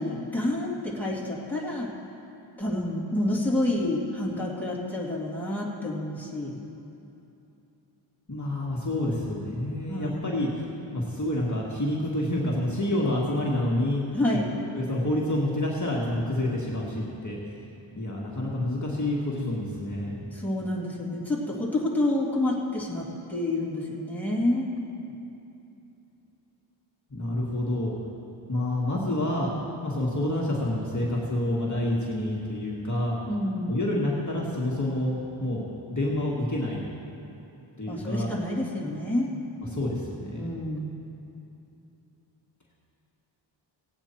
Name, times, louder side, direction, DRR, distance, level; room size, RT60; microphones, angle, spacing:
voice 1, 0.0-1.9 2.6-6.6 9.9-10.4 14.1-14.5 20.3-24.7 33.3-33.8 37.9-39.3 40.4-40.9, left 1 dB, 5° left, -5 dB, 2.4 m, -28 dB
voice 2, 8.3-10.5 10.9-14.0 14.7-17.4 17.9-20.2 27.1-28.0 28.5-33.2 33.7-36.8 37.8-38.3 39.6-40.6, left 1 dB, 35° left, -4 dB, 1.7 m, -28 dB
17.5 x 8.8 x 4.4 m, 2.9 s
wide cardioid pair, 50°, 48 cm